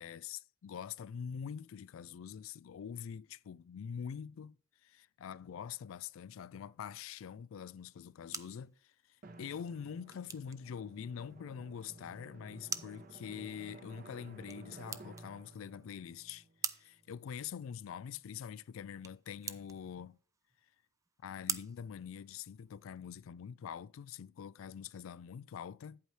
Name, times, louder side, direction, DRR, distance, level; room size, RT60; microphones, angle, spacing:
voice 1, 0.0-4.6 4.8-20.2 21.2-26.0, left 7 dB, 90° left, 0.3 m, -45 dB
sound 1, 7.9-22.8, right 6 dB, 15° right, 0.4 m, -47 dB
Drum, 9.2-17.5, right 2 dB, 45° right, 0.8 m, -55 dB
8.9 x 8.2 x 3.2 m
head